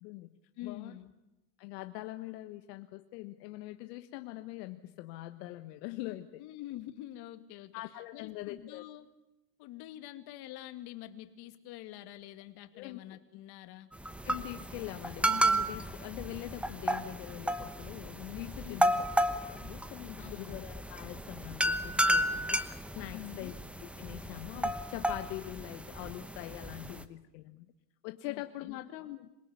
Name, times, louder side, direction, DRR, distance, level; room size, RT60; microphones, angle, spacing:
voice 1, 0.0-0.3 0.6-0.9 1.6-6.4 7.7-8.8 12.7-13.0 14.2-22.6 22.9-27.7 28.0-29.3, left 17 dB, 70° left, 8 dB, 1.4 m, -43 dB
voice 2, 0.6-1.1 6.4-7.7 8.1-9.1 9.6-13.9 18.6-19.0 20.2-20.6 23.1-23.6 28.2-28.8, left 14 dB, 50° left, 9 dB, 2.3 m, -46 dB
sound 1, 13.9-27.0, right 1 dB, ahead, 1.0 m, -33 dB
27.0 x 18.0 x 9.5 m, 0.95 s
supercardioid pair, 140°, 49 cm